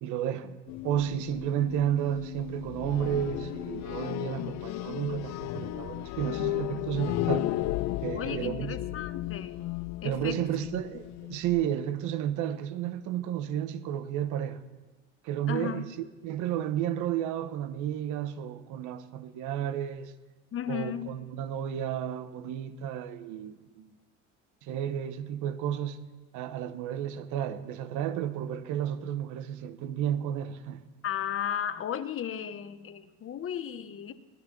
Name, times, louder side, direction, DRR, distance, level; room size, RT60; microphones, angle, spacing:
voice 1, 0.0-0.6 0.8-7.5 8.0-8.8 10.0-14.6 15.2-20.1 20.7-23.9 24.6-26.0 26.3-30.8, right 10 dB, 80° right, 1.1 m, -32 dB
sound 1, 0.7-11.6, left 17 dB, 65° left, 0.5 m, -34 dB
voice 2, 8.1-9.6 10.0-10.4 15.5-15.9 20.5-21.1 31.0-34.1, left 9 dB, 45° left, 1.0 m, -35 dB
17.0 x 10.5 x 6.1 m
cardioid pair, 95°, 30 cm